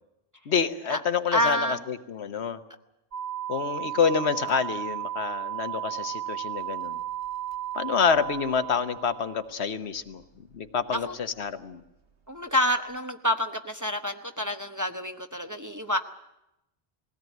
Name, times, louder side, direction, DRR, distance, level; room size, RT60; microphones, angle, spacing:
voice 1, 0.5-2.6 3.5-7.0 7.7-10.2 10.5-11.8, left 6 dB, 75° left, 10 dB, 1.3 m, -27 dB
voice 2, 1.3-1.8 10.9-11.1 12.3-16.0, equal, 20° right, 5 dB, 0.9 m, -28 dB
sound 1, 3.1-9.5, right 11 dB, 60° right, 1.8 m, -34 dB
20.0 x 17.0 x 9.2 m, 0.89 s
omnidirectional pair, 1.1 m